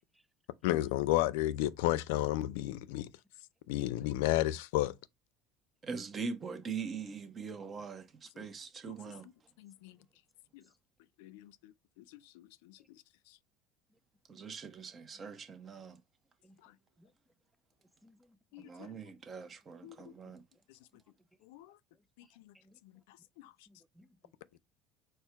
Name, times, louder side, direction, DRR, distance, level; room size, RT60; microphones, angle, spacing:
voice 1, 0.6-3.1 3.7-5.0 9.6-10.0 11.2-11.7 12.1-12.8 16.6-16.7 18.5-18.9 19.8-20.0 21.5-21.7 23.4-23.5, left 16 dB, 85° left, 0.3 m, -33 dB
voice 2, 5.8-9.3 14.3-16.0 18.6-20.4, right 5 dB, 25° right, 0.8 m, -42 dB
voice 3, 18.0-18.4 18.8-19.1 20.5-20.6 22.2-22.4 22.6-22.8 23.7-24.6, left 1 dB, ahead, 0.4 m, -65 dB
4.4 x 2.2 x 4.5 m
cardioid pair, 140°, 0 cm